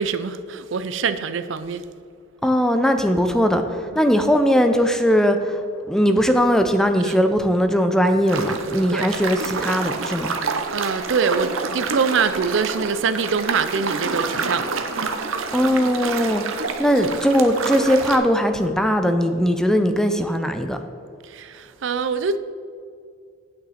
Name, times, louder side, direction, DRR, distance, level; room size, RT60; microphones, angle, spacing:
voice 1, 0.0-1.8 3.9-4.0 7.0-7.2 8.9-9.1 10.7-14.8 21.2-22.4, right 5 dB, 60° right, 12 dB, 0.5 m, -24 dB
voice 2, 2.4-5.6 5.9-10.3 15.5-16.4 16.8-20.8, equal, 5° left, 6 dB, 0.5 m, -19 dB
sound 1, 8.3-18.2, right 4 dB, 80° right, 0.9 m, -28 dB
8.8 x 8.6 x 4.3 m, 2.3 s
head